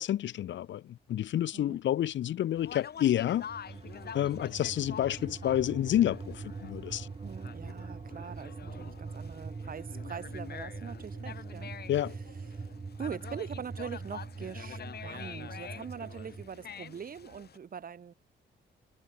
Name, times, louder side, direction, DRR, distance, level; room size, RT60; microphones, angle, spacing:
voice 1, 0.0-3.5 4.1-7.1 11.9-12.1, left 12 dB, 70° left, 1.4 m, -29 dB
Conversation, 2.6-17.6, left 8 dB, 55° left, 6.7 m, -47 dB
sound 1, 3.2-16.5, right 4 dB, 25° right, 2.1 m, -43 dB
voice 2, 7.2-11.7 12.1-12.7 13.0-18.1, right 7 dB, 45° right, 2.4 m, -43 dB
cardioid pair, 90°, 20 cm